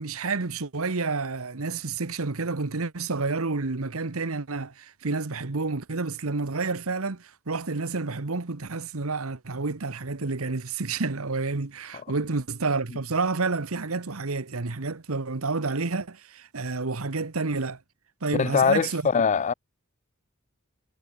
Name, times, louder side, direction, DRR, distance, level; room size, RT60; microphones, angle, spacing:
voice 1, 0.0-17.8 18.2-19.0, right 3 dB, 75° right, 1.2 m, -29 dB
voice 2, 18.3-19.5, left 6 dB, 35° left, 0.4 m, -22 dB
head